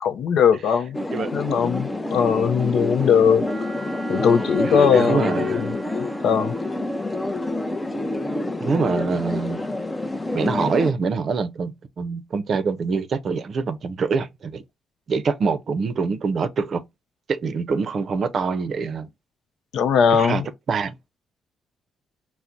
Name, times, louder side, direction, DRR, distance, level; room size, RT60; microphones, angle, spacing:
voice 1, 0.0-1.0 1.3-3.5 4.1-5.8 6.2-6.5 19.7-20.5, left 7 dB, 70° left, 0.5 m, -20 dB
sound 1, 0.9-10.9, left 2 dB, 15° left, 0.5 m, -27 dB
Wind instrument woodwind instrument, 3.5-7.3, right 2 dB, 5° right, 1.1 m, -41 dB
voice 2, 4.6-5.6 8.6-9.6 10.3-14.6 15.1-16.8 17.3-19.1 20.1-20.4 20.7-20.9, right 5 dB, 50° right, 0.5 m, -25 dB
5.7 x 2.1 x 2.4 m
cardioid pair, 90°, 0 cm